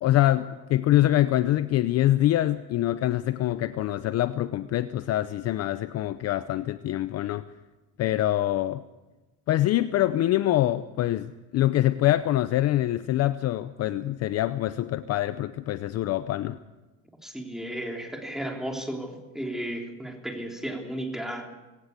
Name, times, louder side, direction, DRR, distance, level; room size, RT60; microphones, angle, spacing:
voice 1, 0.0-7.4 8.0-8.8 9.5-16.6, left 14 dB, 40° left, 13 dB, 0.7 m, -25 dB
voice 2, 17.2-21.5, right 1 dB, ahead, 2 dB, 3.4 m, -34 dB
19.5 x 18.0 x 8.2 m, 1.1 s
supercardioid pair, 130°, 38 cm